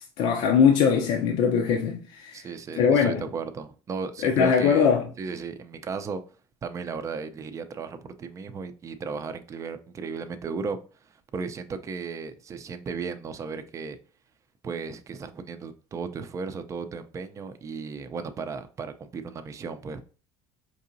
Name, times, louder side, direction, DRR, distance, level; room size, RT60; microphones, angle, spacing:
voice 1, 0.2-2.5 2.8-3.2 4.2-5.1, left 7 dB, 70° left, 0.6 m, -21 dB
voice 2, 2.3-4.9 5.2-6.2 6.6-14.0 14.6-20.0, right 5 dB, 30° right, 0.5 m, -35 dB
4.7 x 2.8 x 2.6 m
supercardioid pair, 100°, 10 cm